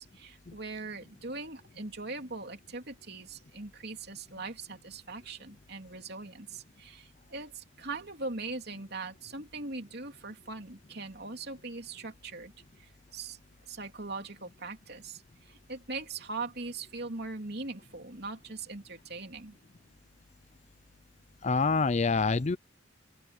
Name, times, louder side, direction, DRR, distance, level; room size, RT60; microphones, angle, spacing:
voice 1, 0.0-13.4 13.7-19.6, right 3 dB, 60° right, 3.3 m, -41 dB
voice 2, 21.4-22.6, left 4 dB, 35° left, 0.5 m, -26 dB
open air
head